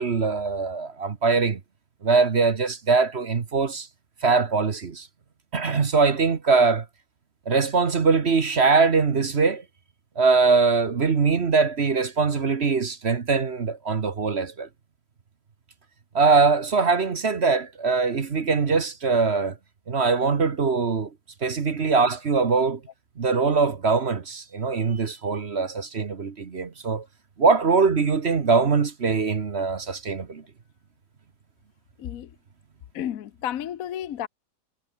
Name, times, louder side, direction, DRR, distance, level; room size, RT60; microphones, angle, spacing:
voice 1, 0.0-1.6 2.0-3.9 4.2-5.1 5.5-6.8 7.5-9.6 10.2-14.7 16.1-19.6 19.9-21.1 21.4-22.8 23.2-27.0 27.4-30.4, right 4 dB, 40° right, 1.4 m, -22 dB
voice 2, 32.0-32.3 32.9-34.3, left 10 dB, 60° left, 1.1 m, -32 dB
omnidirectional pair, 1.9 m